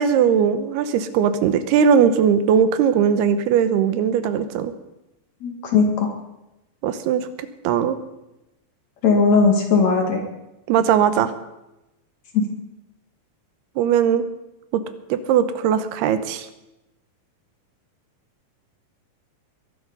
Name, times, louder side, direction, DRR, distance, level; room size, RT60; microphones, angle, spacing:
voice 1, 0.0-4.7 6.8-8.0 10.7-11.3 13.8-14.3 14.7-14.8 15.1-16.5, right 8 dB, 85° right, 11 dB, 3.0 m, -19 dB
voice 2, 5.4-6.1 9.0-10.2 12.3-12.4, left 4 dB, 50° left, 3 dB, 2.8 m, -18 dB
21.5 x 11.5 x 5.5 m, 0.94 s
omnidirectional pair, 4.5 m